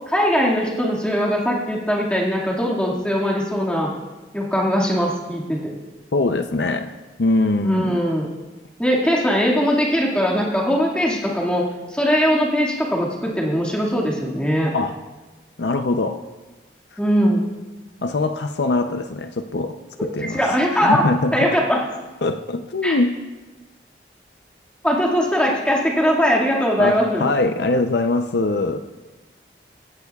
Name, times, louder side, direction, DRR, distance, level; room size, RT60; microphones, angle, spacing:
voice 1, 0.1-3.9 4.3-5.7 7.6-8.3 8.8-14.7 17.0-17.4 20.0-20.1 20.3-21.0 21.3-21.9 22.8-23.0 24.8-27.3, equal, 5° left, -3 dB, 1.9 m, -20 dB
voice 2, 6.1-6.9 7.2-8.0 14.7-15.0 15.6-16.2 18.0-21.6 22.2-23.2 26.8-28.8, left 2 dB, 75° left, 8 dB, 0.6 m, -22 dB
16.5 x 15.0 x 2.4 m, 1.2 s
head